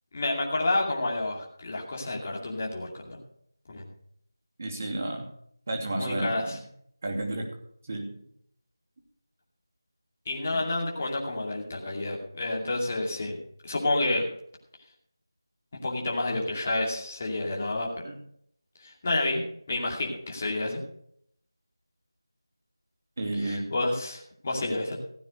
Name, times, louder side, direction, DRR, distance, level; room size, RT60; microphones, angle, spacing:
voice 1, 0.1-3.2 3.7-3.9 5.9-6.6 10.3-13.4 13.6-14.2 15.8-17.9 18.8-19.4 19.7-20.8 23.4-25.0, left 2 dB, 25° left, -2 dB, 2.5 m, -29 dB
voice 2, 4.6-5.3 5.7-6.6 7.0-7.5 7.9-8.1 18.0-18.2 23.2-23.7, right 2 dB, 30° right, 1 dB, 2.7 m, -31 dB
15.5 x 9.2 x 5.1 m, 0.68 s
figure-of-eight pair, 175°, 2 cm